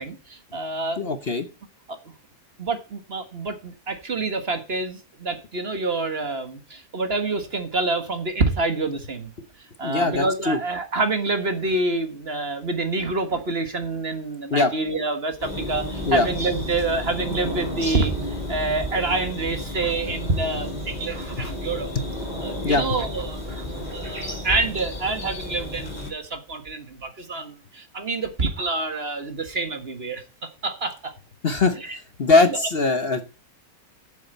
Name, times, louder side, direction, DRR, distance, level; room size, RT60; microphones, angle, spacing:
voice 1, 0.0-1.1 1.9-2.0 2.6-9.3 9.8-21.9 22.4-23.7 23.9-31.1 31.8-32.0 32.4-32.6, right 3 dB, 45° right, 7 dB, 1.7 m, -27 dB
voice 2, 1.0-1.5 9.8-10.6 14.5-14.7 16.0-16.3 22.6-22.8 31.4-31.8 32.2-33.2, left 3 dB, 45° left, 9 dB, 1.1 m, -20 dB
sound 1, 15.4-26.1, left 1 dB, 30° left, 5.5 m, -32 dB
8.5 x 7.3 x 7.9 m, 0.34 s
omnidirectional pair, 1.6 m